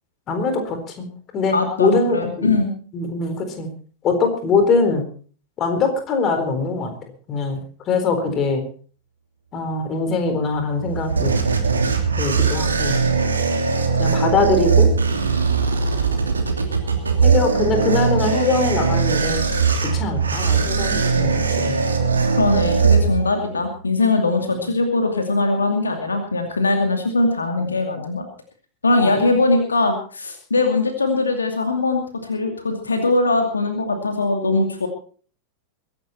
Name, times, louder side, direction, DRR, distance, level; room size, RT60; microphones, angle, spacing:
voice 1, 0.3-1.1 1.3-2.5 2.9-3.7 4.0-5.0 5.6-6.9 7.3-7.6 7.9-8.6 9.5-11.3 12.2-13.0 14.0-14.9 17.2-19.4 19.8-21.8 24.5-24.7 27.6-27.7 29.0-29.3, left 3 dB, 30° left, 6 dB, 4.2 m, -22 dB
voice 2, 1.5-2.7 22.4-28.3 28.8-34.9, left 3 dB, 75° left, 5 dB, 2.5 m, -21 dB
sound 1, 10.6-23.5, right 5 dB, 75° right, 2.9 m, -20 dB
23.0 x 11.0 x 4.3 m, 0.42 s
figure-of-eight pair, 90°, 0 cm